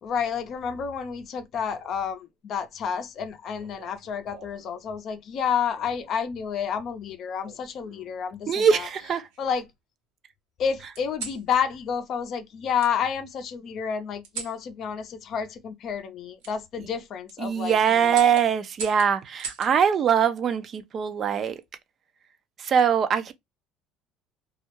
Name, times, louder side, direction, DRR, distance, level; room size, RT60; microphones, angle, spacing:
voice 1, 0.0-8.9 9.4-9.7 10.6-18.2, left 7 dB, 55° left, 0.5 m, -30 dB
sound 1, 3.6-4.7 5.7-6.1 7.4-8.2 8.8-9.7 10.9-11.4 12.8-12.9 14.2-14.6 16.4-16.5 17.1-17.4 18.1-19.7 21.2-21.6, right 5 dB, 85° right, 0.8 m, -41 dB
voice 2, 8.5-9.3 17.4-21.6 22.6-23.3, right 7 dB, 45° right, 0.4 m, -22 dB
2.3 x 2.1 x 2.9 m
supercardioid pair, 90°, 0 cm